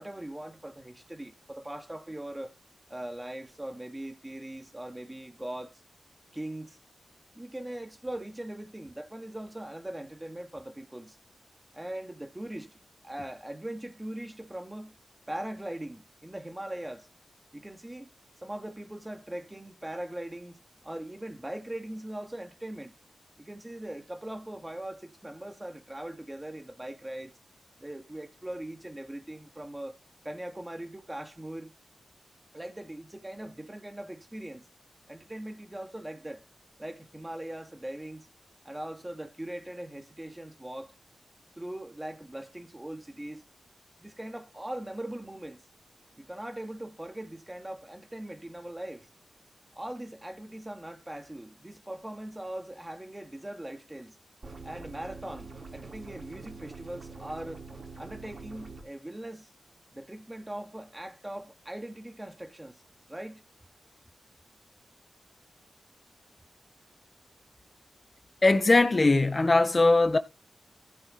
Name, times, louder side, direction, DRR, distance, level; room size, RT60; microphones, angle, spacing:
voice 1, 0.0-2.5 2.9-5.8 6.3-6.8 7.3-11.2 11.7-12.7 13.0-15.0 15.3-17.1 17.5-18.1 18.4-20.6 20.8-23.0 23.4-27.3 27.8-30.0 30.2-31.7 32.5-34.7 35.1-36.4 36.8-38.3 38.6-40.9 41.6-43.4 44.0-45.6 46.2-49.1 49.8-54.2 54.6-57.6 58.0-59.5 59.9-62.8 63.1-63.4, right 1 dB, 20° right, 2.8 m, -40 dB
sound 1, 54.4-58.8, right 4 dB, 50° right, 5.2 m, -45 dB
voice 2, 68.4-70.2, left 2 dB, 40° left, 1.7 m, -21 dB
15.5 x 6.6 x 4.4 m
cardioid pair, 45°, 0 cm